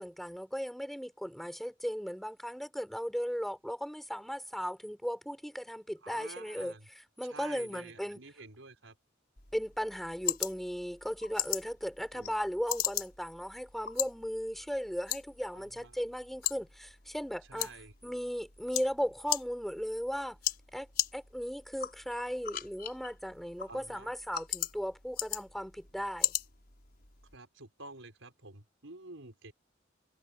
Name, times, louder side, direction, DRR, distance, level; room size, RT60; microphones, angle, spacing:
voice 1, 0.0-8.2 9.5-17.8 18.0-20.4 20.7-20.9 21.1-26.3, equal, ahead, 6.4 m, -37 dB
voice 2, 6.0-6.9 7.3-8.9 12.1-12.3 15.5-15.9 17.5-17.9 23.7-24.1 27.3-29.5, right 3 dB, 80° right, 5.2 m, -50 dB
sound 1, 9.4-27.4, left 11 dB, 55° left, 5.6 m, -39 dB
head